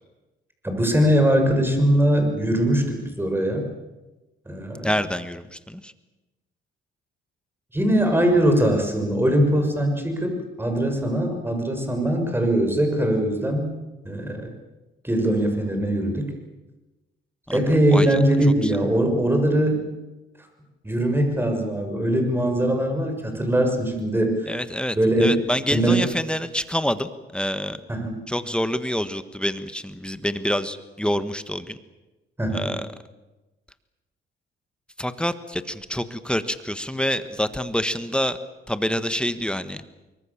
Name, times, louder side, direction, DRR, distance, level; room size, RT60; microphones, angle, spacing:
voice 1, 0.6-3.7 4.5-4.9 7.7-13.7 14.0-14.5 15.0-16.3 17.5-19.8 20.8-24.5 24.9-25.3 25.7-26.0 27.9-28.1 32.4-32.7, right 1 dB, 10° right, 4 dB, 6.7 m, -21 dB
voice 2, 4.8-5.9 17.5-18.2 18.6-18.7 24.5-27.8 28.3-31.8 32.5-32.9 35.0-38.4 38.7-39.8, equal, 5° left, 11 dB, 1.5 m, -27 dB
24.5 x 23.5 x 7.4 m, 1.1 s
cardioid pair, 90°, 20 cm